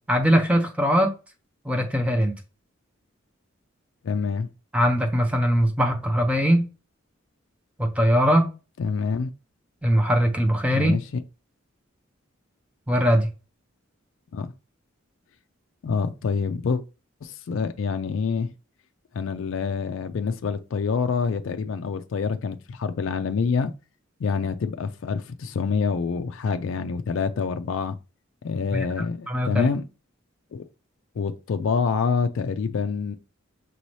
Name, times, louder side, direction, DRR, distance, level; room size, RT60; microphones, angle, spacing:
voice 1, 0.1-1.1 1.6-2.4 4.7-6.7 7.8-8.5 9.8-10.9 12.9-13.3 28.7-29.7, equal, 5° right, 0.6 m, -21 dB
voice 2, 4.0-4.5 8.8-9.3 10.7-11.0 14.3-14.5 15.8-16.8 17.2-18.5 19.1-23.7 24.2-28.0 28.4-29.8 30.5-30.6 31.2-33.1, left 5 dB, 70° left, 0.4 m, -26 dB
6.0 x 2.7 x 3.1 m
head